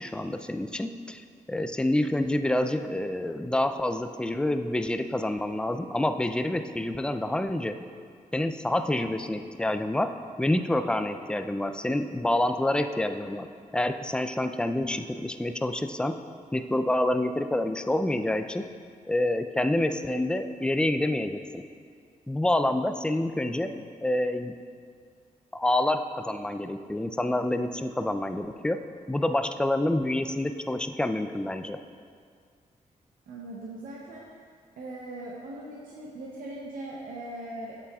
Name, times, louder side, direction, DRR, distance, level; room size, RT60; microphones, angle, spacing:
voice 1, 0.0-7.8 8.3-10.1 10.4-13.5 13.7-16.2 16.5-18.7 19.1-21.6 22.3-24.5 25.5-28.8 29.1-31.8, left 1 dB, 5° left, 8 dB, 0.3 m, -27 dB
voice 2, 33.3-34.2 34.8-37.8, right 1 dB, 85° right, -4 dB, 0.7 m, -40 dB
8.2 x 7.4 x 2.3 m, 2.1 s
cardioid pair, 75°, 14 cm